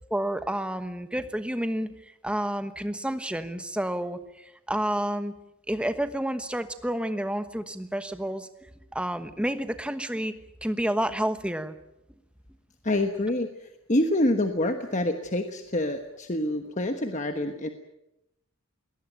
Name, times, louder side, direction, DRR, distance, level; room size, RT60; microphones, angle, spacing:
voice 1, 0.1-1.9 2.2-5.3 5.7-8.5 8.9-10.3 10.6-11.7, right 1 dB, 5° right, 10 dB, 1.2 m, -30 dB
voice 2, 12.8-17.7, left 1 dB, 35° left, 6 dB, 1.2 m, -27 dB
21.5 x 18.5 x 9.2 m, 0.89 s
head